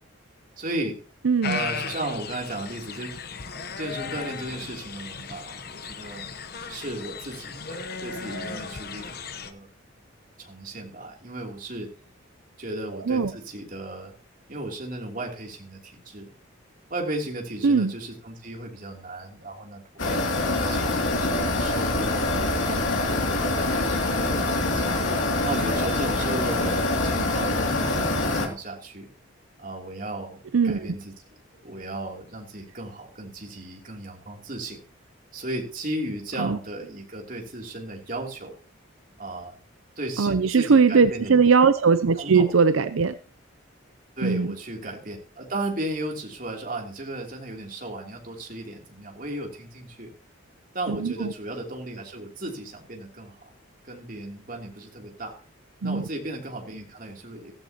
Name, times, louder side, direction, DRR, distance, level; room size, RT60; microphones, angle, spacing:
voice 1, 0.6-1.0 1.4-3.2 3.8-6.3 6.7-9.2 9.4-9.7 10.4-11.9 12.6-14.1 14.5-16.3 16.9-22.2 22.6-25.0 25.4-29.1 29.6-30.4 30.6-31.1 31.6-34.8 35.3-38.5 39.2-39.6 40.0-41.3 42.2-42.5 44.2-50.1 50.7-53.5 53.8-55.4 55.8-57.5, right 1 dB, 40° right, 0 dB, 3.0 m, -35 dB
voice 2, 1.2-1.6 13.1-13.3 17.6-17.9 30.5-30.9 36.4-36.6 40.2-43.2 44.2-44.5 50.9-51.3 55.8-56.0, right 5 dB, 80° right, 12 dB, 0.5 m, -20 dB
sound 1, 1.4-9.5, left 5 dB, 50° left, 1.0 m, -36 dB
sound 2, 20.0-28.5, left 2 dB, 70° left, 2.6 m, -25 dB
15.0 x 14.5 x 2.9 m, 0.37 s
head